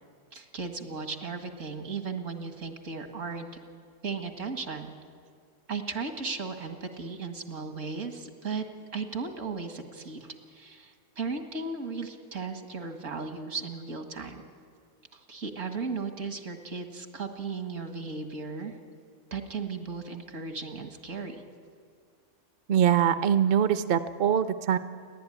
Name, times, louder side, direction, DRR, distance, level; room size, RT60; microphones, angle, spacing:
voice 1, 0.3-3.5 4.0-4.9 5.7-8.6 8.9-14.4 15.1-18.8 19.3-21.4, right 4 dB, 80° right, 6 dB, 2.2 m, -36 dB
voice 2, 22.7-24.8, right 9 dB, 55° right, 12 dB, 0.8 m, -23 dB
29.5 x 11.5 x 10.0 m, 2.1 s
omnidirectional pair, 1.3 m